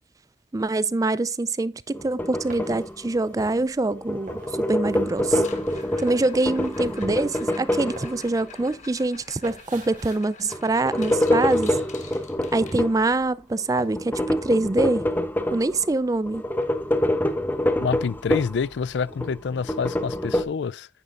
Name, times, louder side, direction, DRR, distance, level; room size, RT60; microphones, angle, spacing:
voice 1, 0.5-4.4 4.7-5.4 6.0-11.8 12.5-15.1 15.5-16.4, right 2 dB, 20° right, 0.4 m, -24 dB
sound 1, 1.9-3.6 3.9-8.7 10.5-13.0 13.9-15.9 16.3-18.7 19.0-20.4, left 1 dB, 10° left, 0.8 m, -26 dB
sound 2, 2.4-11.6 11.9-12.9 13.2-14.1, right 2 dB, 45° right, 2.6 m, -45 dB
sound 3, 5.3-13.3 15.5-15.6 15.9-16.2 16.6-16.7 17.3-17.4 19.3-19.4, left 5 dB, 40° left, 1.4 m, -47 dB
voice 2, 17.8-20.9, left 5 dB, 80° left, 0.4 m, -27 dB
10.0 x 9.7 x 2.5 m
head